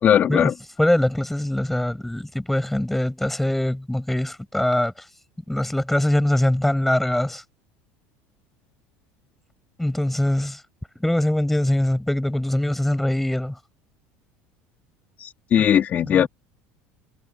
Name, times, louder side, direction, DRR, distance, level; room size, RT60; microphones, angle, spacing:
voice 1, 0.0-0.5 15.2-16.3, left 9 dB, 35° left, 3.9 m, -19 dB
voice 2, 0.8-4.9 5.5-7.4 9.8-10.6 11.0-13.5 15.6-15.7 16.0-16.3, left 1 dB, 5° left, 6.6 m, -22 dB
cardioid pair, 145°, 5 cm